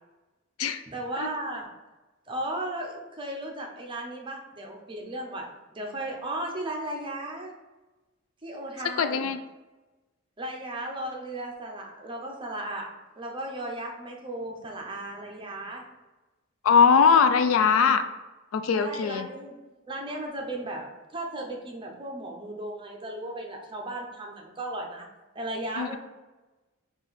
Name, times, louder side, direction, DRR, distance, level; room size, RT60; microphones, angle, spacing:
voice 1, 0.9-1.7 2.3-5.5 5.7-7.5 8.4-9.2 10.4-15.8 18.7-20.9 21.1-25.1 25.3-26.0, right 1 dB, 25° right, 1 dB, 0.7 m, -35 dB
voice 2, 9.0-9.4 16.6-18.0 18.5-19.3 25.8-26.0, left 6 dB, 85° left, 9 dB, 0.4 m, -21 dB
4.8 x 2.4 x 4.1 m, 1.1 s
head